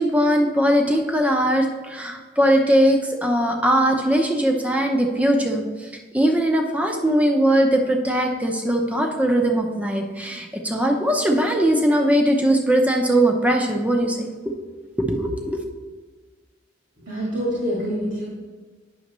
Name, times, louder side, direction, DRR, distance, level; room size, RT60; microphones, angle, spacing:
voice 1, 0.0-5.9 6.1-14.3 15.0-15.6, right 1 dB, 5° right, 2 dB, 0.7 m, -20 dB
voice 2, 17.0-18.3, equal, 65° right, -7 dB, 2.0 m, -26 dB
9.4 x 6.3 x 3.1 m, 1.4 s
head